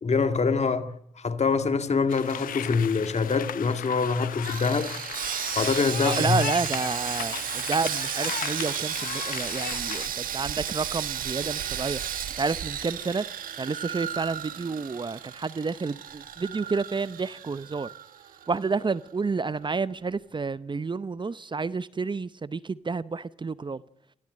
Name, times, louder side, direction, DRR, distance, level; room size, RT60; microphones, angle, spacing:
voice 1, 0.0-4.9 5.6-6.4, left 4 dB, 45° left, 2.0 m, -25 dB
sound 1, 2.1-10.1, left 10 dB, 70° left, 1.0 m, -36 dB
Sawing, 4.4-18.7 18.9-19.1 19.6-19.7, right 10 dB, 70° right, 1.5 m, -34 dB
voice 2, 6.0-12.0 12.4-13.2 13.6-17.9 18.5-23.8, right 4 dB, 30° right, 0.8 m, -30 dB
25.0 x 15.5 x 7.7 m
hypercardioid pair, 40°, 15 cm